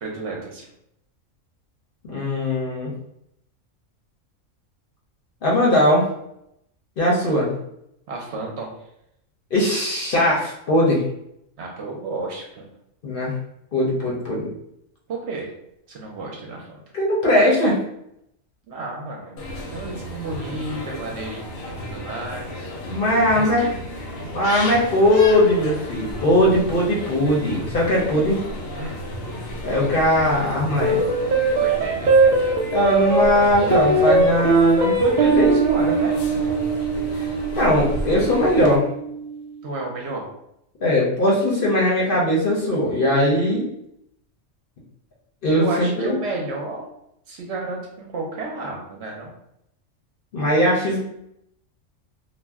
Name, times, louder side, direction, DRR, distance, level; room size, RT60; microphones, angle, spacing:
voice 1, 0.0-0.7 8.1-8.7 11.6-12.7 15.1-15.5 15.9-16.8 18.7-19.4 19.7-22.7 23.3-23.8 28.7-29.0 31.6-32.1 35.0-36.2 39.6-40.3 45.5-46.9 47.3-49.3, right 3 dB, 65° right, 0 dB, 0.8 m, -31 dB
voice 2, 2.1-2.9 5.4-6.0 7.0-7.5 9.5-11.0 13.0-13.3 13.7-14.5 16.9-17.8 22.9-23.6 24.3-28.4 29.6-31.0 32.7-34.9 35.2-35.7 37.2-37.3 37.6-38.8 40.8-43.7 45.4-46.2 50.3-51.0, left 1 dB, 55° left, -4 dB, 0.7 m, -19 dB
sound 1, 19.4-38.8, equal, 85° left, 1.0 m, -33 dB
sound 2, 30.8-39.4, right 3 dB, 85° right, 0.4 m, -21 dB
2.5 x 2.1 x 3.4 m, 0.78 s
omnidirectional pair, 1.4 m